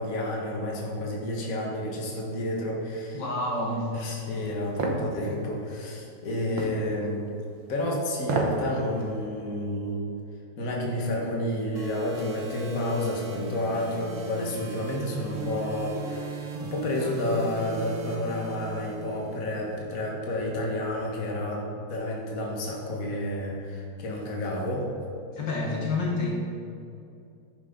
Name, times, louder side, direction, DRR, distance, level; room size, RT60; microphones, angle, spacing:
voice 1, 0.0-3.2 3.9-7.2 7.7-10.1 10.6-24.9, left 1 dB, 45° left, -2 dB, 1.9 m, -30 dB
voice 2, 3.1-3.9 25.3-26.4, left 2 dB, 65° left, -2 dB, 2.0 m, -28 dB
sound 1, 4.8-5.0 6.6-6.8 8.2-8.6 9.0-9.1, right 3 dB, 85° right, 1.9 m, -28 dB
sound 2, 11.8-19.7, right 4 dB, 45° right, 1.4 m, -38 dB
10.5 x 10.0 x 3.9 m, 2.5 s
omnidirectional pair, 2.1 m